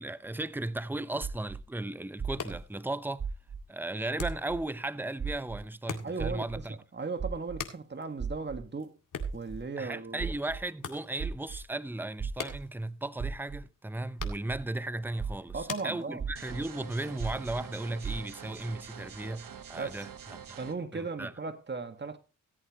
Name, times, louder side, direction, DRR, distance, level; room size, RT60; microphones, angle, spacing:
voice 1, 0.0-3.2 3.7-6.8 9.8-20.1 20.9-21.3, right 2 dB, 5° right, 0.8 m, -36 dB
Heartbeats increasing rhythm, 1.2-1.6 2.2-2.6 3.2-3.6 4.2-4.6 5.2-5.6 6.2-6.6 7.2-7.6 8.2-8.6 9.2-9.6 10.2-10.6 11.2-11.6 12.2-12.6 13.2-13.6 14.2-14.6 15.2-15.6 16.2-16.6 17.2-17.5 18.0-18.1, right 7 dB, 50° right, 2.5 m, -35 dB
sound 1, 2.1-16.6, left 6 dB, 70° left, 2.1 m, -47 dB
voice 2, 6.0-9.0 9.3-10.3 15.5-16.3 19.8-20.0 20.5-22.2, right 4 dB, 30° right, 1.7 m, -37 dB
sound 2, 16.4-20.7, right 8 dB, 75° right, 1.4 m, -46 dB
18.0 x 8.4 x 3.0 m
cardioid pair, 60°, 33 cm